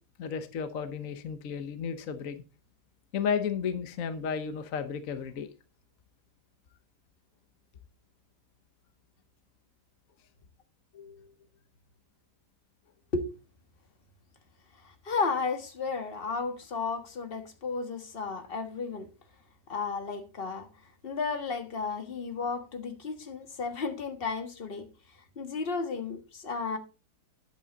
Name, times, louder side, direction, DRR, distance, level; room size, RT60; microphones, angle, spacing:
voice 1, 0.2-2.4 3.1-5.5 10.9-11.3, left 7 dB, 60° left, 1.3 m, -33 dB
voice 2, 14.8-19.1 19.7-20.7 21.0-24.9 25.3-26.8, left 4 dB, 35° left, 1.7 m, -33 dB
10.5 x 8.4 x 4.1 m
omnidirectional pair, 1.7 m